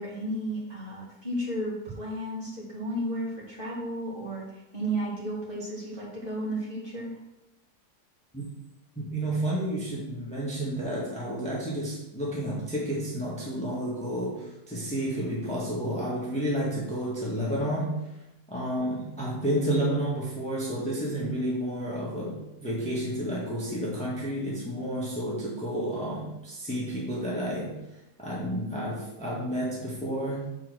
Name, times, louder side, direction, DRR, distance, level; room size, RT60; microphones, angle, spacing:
voice 1, 0.0-7.2, right 1 dB, 30° right, -6 dB, 2.8 m, -33 dB
voice 2, 8.9-17.9 18.5-27.8 28.2-30.5, right 1 dB, 5° left, -5 dB, 1.6 m, -31 dB
7.5 x 4.8 x 6.2 m, 0.91 s
omnidirectional pair, 1.8 m